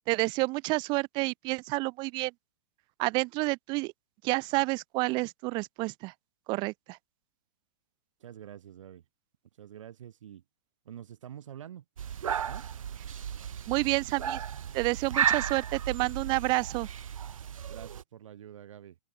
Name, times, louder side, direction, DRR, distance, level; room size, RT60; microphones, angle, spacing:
voice 1, 0.1-2.3 3.0-3.9 4.2-6.1 6.5-7.0 13.7-14.4 14.7-16.9, right 25 dB, 25° right, 1.0 m, -29 dB
voice 2, 8.2-9.0 9.6-10.4 10.8-11.8 12.5-12.7 17.7-19.0, right 10 dB, 70° right, 6.5 m, -46 dB
sound 1, 12.0-18.0, right 8 dB, 85° right, 1.8 m, -33 dB
open air
hypercardioid pair, 155°, 17 cm